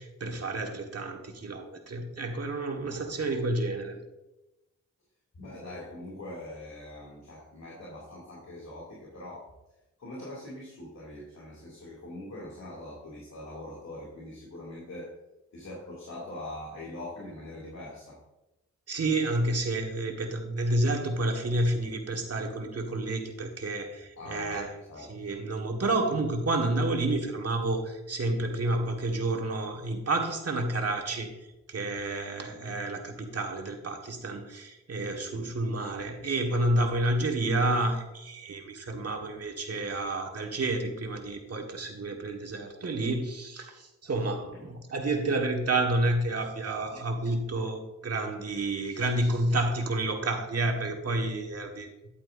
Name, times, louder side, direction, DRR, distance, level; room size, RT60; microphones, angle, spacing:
voice 1, 0.0-4.0 18.9-24.7 25.0-31.3 31.7-51.9, right 2 dB, 55° right, 3 dB, 1.7 m, -30 dB
voice 2, 2.8-3.1 5.4-9.5 10.0-15.1 15.5-18.2 24.2-25.0 35.3-35.5 44.5-44.7 46.9-47.0, left 1 dB, 65° left, -5 dB, 2.6 m, -43 dB
10.5 x 8.8 x 2.6 m, 0.97 s
wide cardioid pair, 90°, 29 cm